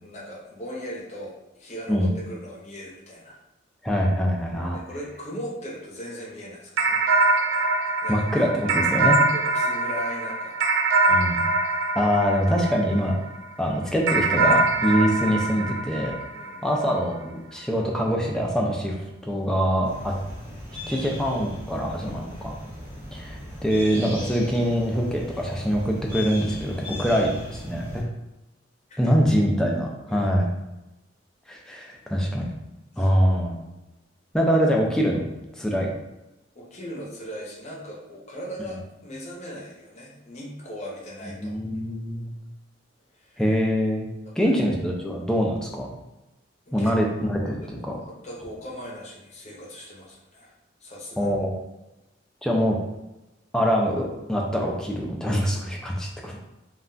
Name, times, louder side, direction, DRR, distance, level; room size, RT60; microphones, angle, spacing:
voice 1, 0.0-3.4 4.7-7.0 8.0-8.3 8.6-8.7 9.3-10.5 16.3-16.8 21.9-22.5 28.9-29.1 30.1-30.3 32.9-33.1 36.5-41.5 43.1-43.4 44.4-44.5 46.7-46.9 47.4-50.5 50.8-51.3 55.3-55.4 55.9-56.4, equal, 35° left, -3 dB, 0.7 m, -39 dB
voice 2, 3.8-4.8 8.1-9.2 11.0-11.4 12.0-13.2 13.6-16.1 16.6-20.1 20.9-22.6 23.1-28.0 29.0-30.5 31.5-32.5 33.0-33.6 34.3-35.2 35.6-35.9 41.4-42.3 43.4-44.1 44.4-45.9 46.7-48.0 51.2-51.5 52.4-52.8 53.5-56.4, equal, 5° left, -1 dB, 0.4 m, -24 dB
sound 1, 6.8-13.4 14.1-16.8, right 3 dB, 75° right, 0.3 m, -23 dB
sound 2, 19.8-28.0, left 1 dB, 15° right, 0.8 m, -38 dB
2.4 x 2.2 x 3.7 m, 0.99 s
head